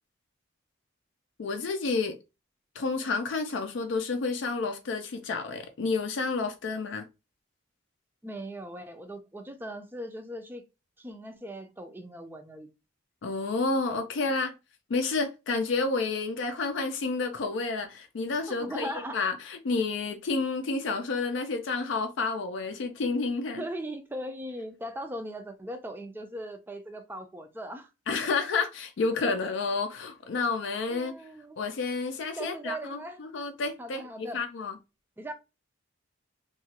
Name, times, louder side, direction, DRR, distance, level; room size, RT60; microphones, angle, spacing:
voice 1, 1.4-2.1 2.8-7.1 13.2-14.5 14.9-23.6 28.1-31.1 31.6-34.8, left 3 dB, 65° left, 0.4 m, -30 dB
voice 2, 8.2-10.6 11.0-12.7 18.5-19.2 23.6-27.9 30.9-31.6 32.4-33.2 33.8-34.5 35.2-35.3, right 1 dB, 10° right, 0.3 m, -39 dB
2.9 x 2.3 x 2.8 m
head